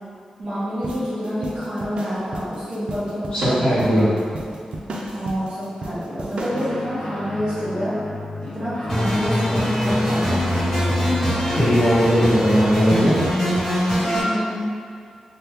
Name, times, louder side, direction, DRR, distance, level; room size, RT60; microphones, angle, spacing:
voice 1, 0.4-4.2 5.1-7.9 8.5-11.1 14.1-14.7, equal, 40° right, -12 dB, 1.0 m, -28 dB
sound 1, 0.8-6.7, right 1 dB, 55° right, 0.3 m, -33 dB
voice 2, 3.3-4.1 11.5-13.2, equal, 40° left, -12 dB, 0.9 m, -18 dB
Guitar, 6.5-14.1, left 1 dB, 75° left, 0.5 m, -35 dB
sound 2, 8.9-14.2, equal, 20° left, 1.5 m, -22 dB
2.8 x 2.1 x 3.3 m, 2.2 s
wide cardioid pair, 180°, 2 cm